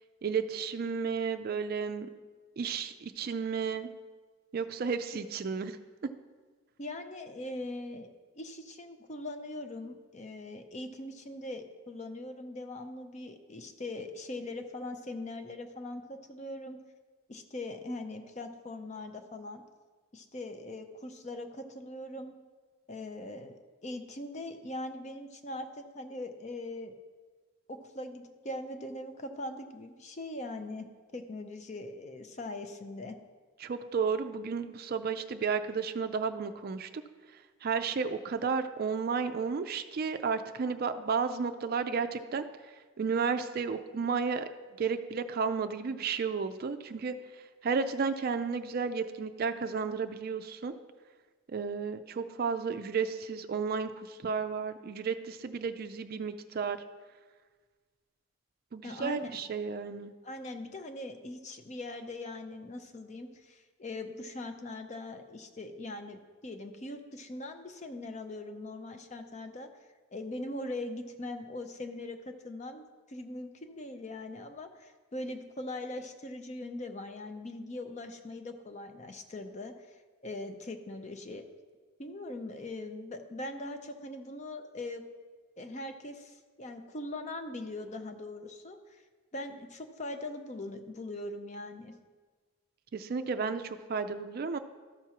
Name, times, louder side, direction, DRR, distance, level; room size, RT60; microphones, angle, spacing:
voice 1, 0.2-2.1 2.6-3.9 4.5-5.8 6.0-6.1 33.6-36.9 37.6-42.4 43.0-44.4 44.8-47.2 47.6-50.7 51.5-56.8 58.7-60.1 92.9-94.6, right 5 dB, 45° right, 9 dB, 0.4 m, -32 dB
voice 2, 6.8-8.1 8.3-16.8 17.3-19.6 20.1-22.3 22.9-26.9 27.7-30.9 31.1-33.2 58.8-59.4 60.2-69.7 70.1-72.8 73.1-79.9 80.2-81.4 82.0-85.0 85.6-89.0 89.3-91.9, left 2 dB, 35° left, 7 dB, 0.5 m, -41 dB
13.0 x 6.0 x 2.9 m, 1.4 s
head